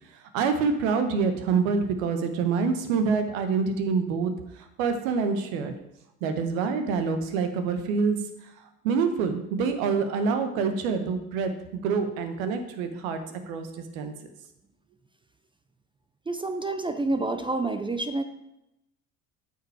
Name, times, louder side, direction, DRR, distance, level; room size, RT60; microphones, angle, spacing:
voice 1, 0.3-5.7 6.2-8.2 8.8-13.2 13.5-14.1, right 5 dB, 70° right, 8 dB, 1.3 m, -26 dB
voice 2, 16.3-18.2, right 2 dB, 10° right, 9 dB, 0.5 m, -28 dB
8.9 x 5.6 x 4.8 m, 0.88 s
hypercardioid pair, 70°, 43 cm